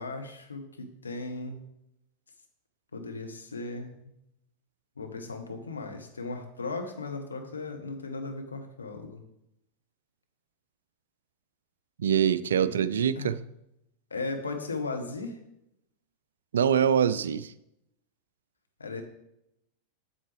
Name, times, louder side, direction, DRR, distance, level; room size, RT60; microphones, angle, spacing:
voice 1, 0.0-1.6 2.9-4.1 5.0-9.2 12.6-12.8 13.1-13.3 14.1-15.4 18.8-19.0, left 3 dB, 80° left, 4 dB, 1.1 m, -37 dB
voice 2, 12.0-13.4 16.5-17.5, right 8 dB, 70° right, 16 dB, 0.3 m, -24 dB
7.9 x 7.4 x 3.3 m, 0.83 s
figure-of-eight pair, 90°, 0 cm